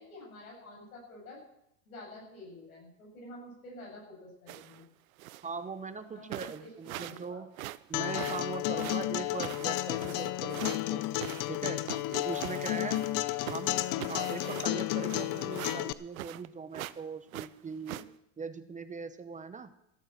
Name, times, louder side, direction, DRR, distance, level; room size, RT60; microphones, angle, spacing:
voice 1, 0.0-1.4 1.9-4.9 6.0-6.7 7.0-7.4 12.0-12.2 17.8-18.0, left 1 dB, 90° left, -1 dB, 7.2 m, -49 dB
sound 1, 4.5-4.8 5.2-5.5 6.0-6.1 6.3-7.3 7.5-10.8 11.2-13.2 13.4-16.5 16.7-17.0 17.3-18.0, right 16 dB, 90° right, 0.6 m, -42 dB
voice 2, 5.4-7.5 7.9-11.1 11.5-11.8 12.2-13.0 13.5-18.0 18.4-19.7, right 5 dB, 20° right, 11 dB, 0.9 m, -40 dB
Acoustic guitar, 7.9-15.9, left 16 dB, 50° left, 0.7 m, -32 dB
14.5 x 8.8 x 7.5 m, 0.82 s
hypercardioid pair, 100°, 41 cm